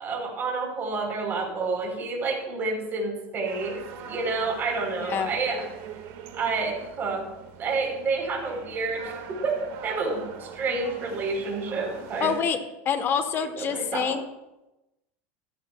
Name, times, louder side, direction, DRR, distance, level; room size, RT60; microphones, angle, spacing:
voice 1, 0.0-5.7 6.3-7.2 7.6-12.3 13.6-14.1, right 3 dB, 30° right, 1 dB, 4.0 m, -29 dB
sound 1, 3.5-12.4, right 7 dB, 60° right, 1.8 m, -42 dB
voice 2, 5.0-5.3 12.2-12.6 12.8-14.2, left 7 dB, 35° left, 8 dB, 1.2 m, -26 dB
15.0 x 13.0 x 2.4 m, 0.96 s
supercardioid pair, 135°, 7 cm